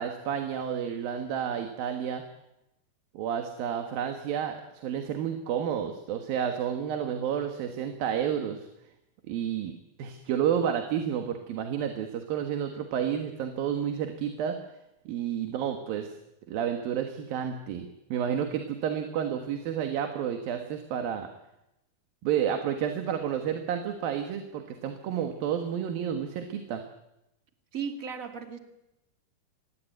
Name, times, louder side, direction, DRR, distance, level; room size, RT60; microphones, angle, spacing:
voice 1, 0.0-2.2 3.1-8.7 9.3-14.6 15.1-16.1 16.5-21.3 22.2-26.8, right 8 dB, 70° right, 6 dB, 3.2 m, -30 dB
voice 2, 27.7-28.6, right 6 dB, 25° right, 6 dB, 2.2 m, -35 dB
24.5 x 20.5 x 9.4 m, 0.90 s
omnidirectional pair, 4.5 m